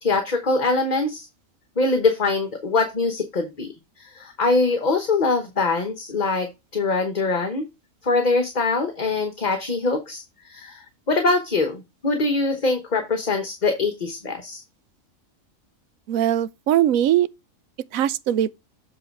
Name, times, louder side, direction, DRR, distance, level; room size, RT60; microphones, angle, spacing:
voice 1, 0.0-1.3 1.8-3.7 4.0-7.7 8.0-14.6, left 3 dB, 35° left, 1.1 m, -23 dB
voice 2, 16.1-17.3 17.9-18.5, right 11 dB, 80° right, 1.0 m, -20 dB
7.7 x 3.9 x 4.6 m
omnidirectional pair, 1.4 m